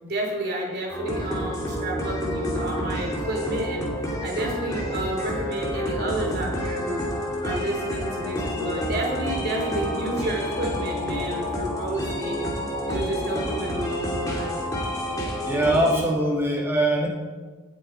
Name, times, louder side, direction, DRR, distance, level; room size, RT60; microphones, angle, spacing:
voice 1, 0.0-3.9 4.2-7.0 7.4-12.5 12.9-14.6, right 1 dB, 50° right, 0 dB, 3.1 m, -30 dB
sound 1, 0.9-16.0, equal, 15° left, 2.4 m, -29 dB
voice 2, 15.4-17.1, right 1 dB, 10° right, -2 dB, 1.8 m, -22 dB
18.0 x 8.2 x 4.3 m, 1.4 s
head